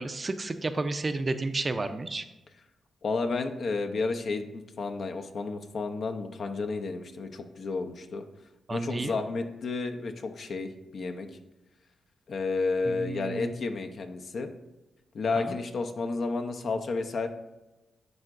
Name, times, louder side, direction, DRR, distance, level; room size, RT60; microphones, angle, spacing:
voice 1, 0.0-2.2 8.7-9.1 12.9-13.5 15.4-15.6, right 3 dB, 35° right, 9 dB, 0.5 m, -32 dB
voice 2, 3.0-8.2 8.7-11.3 12.3-14.5 15.1-17.3, left 3 dB, 60° left, 6 dB, 0.6 m, -31 dB
11.0 x 3.7 x 2.5 m, 1.0 s
cardioid pair, 75°, 0 cm